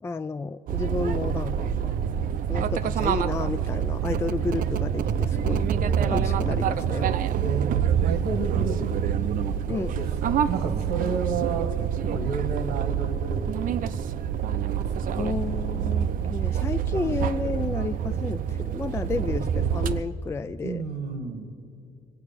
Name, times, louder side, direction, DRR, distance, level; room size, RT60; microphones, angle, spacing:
voice 1, 0.0-5.7 6.1-7.1 9.7-10.0 15.2-20.8, left 4 dB, 15° left, 10 dB, 0.3 m, -31 dB
sound 1, 0.7-20.0, right 8 dB, 55° right, 0.6 m, -26 dB
voice 2, 5.8-6.4 7.4-7.8 8.0-9.1 9.9-11.7 12.1-13.9 14.6-15.2 20.6-21.5, right 5 dB, 90° right, 7 dB, 1.6 m, -32 dB
23.0 x 8.4 x 6.8 m, 2.5 s
cardioid pair, 110°, 17 cm